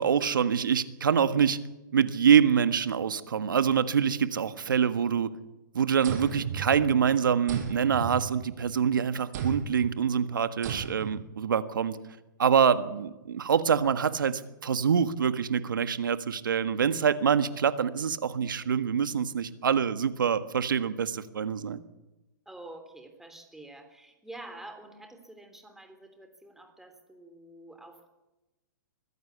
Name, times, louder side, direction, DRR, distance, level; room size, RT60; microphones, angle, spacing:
voice 1, 0.0-1.6 1.9-5.3 5.7-12.0 12.4-21.8, right 7 dB, 90° right, 12 dB, 1.6 m, -25 dB
sound 1, 6.0-7.1 7.5-8.8 9.3-9.9 10.6-11.3, right 6 dB, 55° right, 5.5 m, -35 dB
voice 2, 22.4-28.1, right 2 dB, 5° right, 6 dB, 3.3 m, -48 dB
23.0 x 15.5 x 8.3 m, 1.0 s
hypercardioid pair, 140°, 11 cm